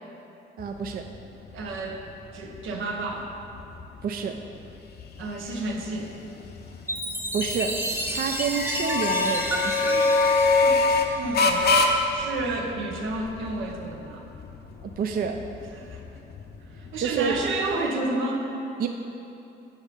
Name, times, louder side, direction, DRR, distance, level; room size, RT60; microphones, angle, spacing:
sound 1, 0.6-17.8, left 3 dB, 55° left, 0.6 m, -27 dB
voice 1, 0.6-1.1 4.0-4.4 7.3-7.8 8.1-9.9 14.8-15.4 17.0-17.4 18.8-18.9, right 6 dB, 50° right, 5 dB, 0.4 m, -28 dB
voice 2, 1.5-2.0 2.3-3.3 5.2-6.2 9.8-14.2 15.7-16.0 16.7-18.5, right 2 dB, 85° right, 1 dB, 0.9 m, -31 dB
Chime, 6.9-11.6, right 1 dB, 10° right, 0.7 m, -31 dB
7.3 x 5.1 x 5.0 m, 2.9 s
cardioid pair, 90°, 20 cm